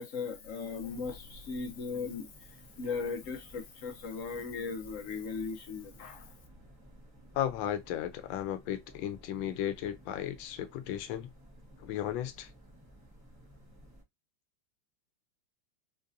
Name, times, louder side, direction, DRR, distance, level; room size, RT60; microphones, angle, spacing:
voice 1, 0.0-2.3 2.8-6.3, left 5 dB, 60° left, 0.9 m, -37 dB
Saturday morning on campus - outdoor, 0.8-14.0, equal, 10° right, 0.9 m, -56 dB
voice 2, 7.3-11.3 11.8-12.5, left 11 dB, 90° left, 1.4 m, -35 dB
4.0 x 2.6 x 2.6 m
omnidirectional pair, 2.0 m